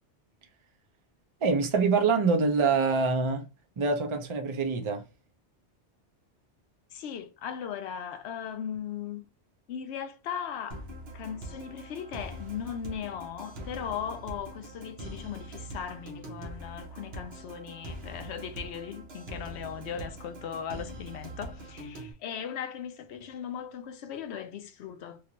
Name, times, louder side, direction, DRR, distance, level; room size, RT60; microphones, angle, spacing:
voice 1, 1.4-3.5 3.8-5.0, right 4 dB, 35° right, 0.5 m, -25 dB
voice 2, 6.9-9.3 9.7-10.8 11.1-25.2, left 8 dB, 75° left, 0.8 m, -38 dB
sound 1, 10.7-22.1, right 1 dB, 65° right, 1.1 m, -43 dB
3.1 x 2.5 x 2.8 m
omnidirectional pair, 1.2 m